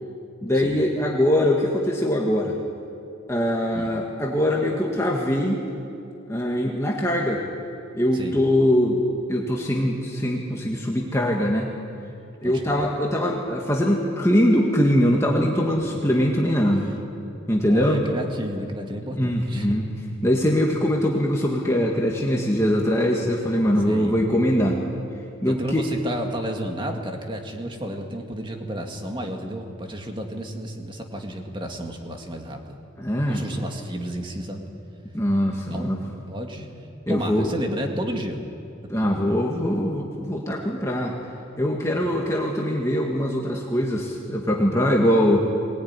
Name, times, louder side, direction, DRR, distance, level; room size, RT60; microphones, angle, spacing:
voice 1, 0.4-2.6 3.3-5.6 6.3-7.4 7.9-9.0 9.3-11.7 12.4-16.9 17.5-18.0 19.1-19.9 20.2-24.8 25.4-25.8 33.0-33.4 35.1-36.1 37.1-37.5 38.9-41.2 41.6-45.4, equal, 15° left, -1 dB, 1.8 m, -22 dB
voice 2, 12.4-12.9 17.7-19.7 23.8-24.2 25.5-32.8 33.3-34.6 35.7-36.0 36.3-36.7 37.1-38.4 41.9-42.2, equal, 25° right, 3 dB, 2.1 m, -32 dB
22.5 x 19.5 x 9.7 m, 2.7 s
head